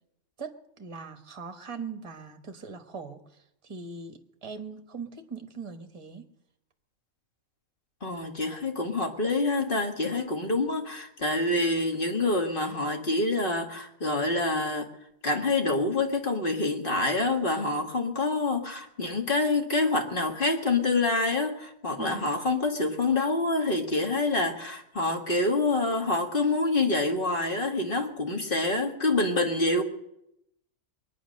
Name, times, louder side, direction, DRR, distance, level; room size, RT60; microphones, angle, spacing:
voice 1, 0.4-6.2 22.0-22.2, right 5 dB, 25° right, 7 dB, 1.2 m, -41 dB
voice 2, 8.0-14.9 15.2-29.8, left 2 dB, 40° left, 4 dB, 1.8 m, -26 dB
22.0 x 9.7 x 6.4 m, 0.83 s
omnidirectional pair, 1.5 m